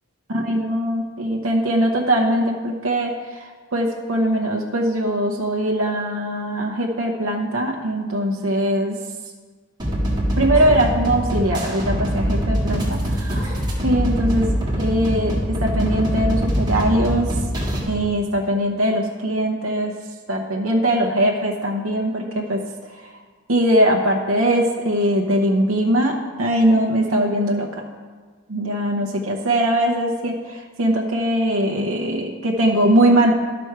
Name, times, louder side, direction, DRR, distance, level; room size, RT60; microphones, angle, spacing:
voice 1, 0.3-9.0 10.4-13.5 13.8-17.3 17.9-19.9 20.3-22.6 23.0-23.1 23.5-27.7 28.5-33.3, right 1 dB, 70° right, 0 dB, 0.9 m, -21 dB
sound 1, 9.8-17.8, equal, 20° right, 1.8 m, -23 dB
11.5 x 6.1 x 4.7 m, 1.5 s
head